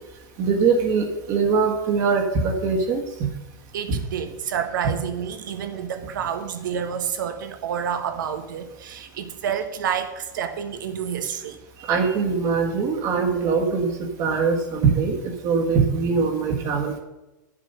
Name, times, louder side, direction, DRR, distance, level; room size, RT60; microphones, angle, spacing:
voice 1, 0.4-3.3 3.9-4.0 11.9-17.0, right 5 dB, 35° right, 3 dB, 1.6 m, -22 dB
voice 2, 3.7-12.2, right 8 dB, 85° right, 8 dB, 1.4 m, -29 dB
10.5 x 7.6 x 5.4 m, 1.0 s
supercardioid pair, 165°, 10 cm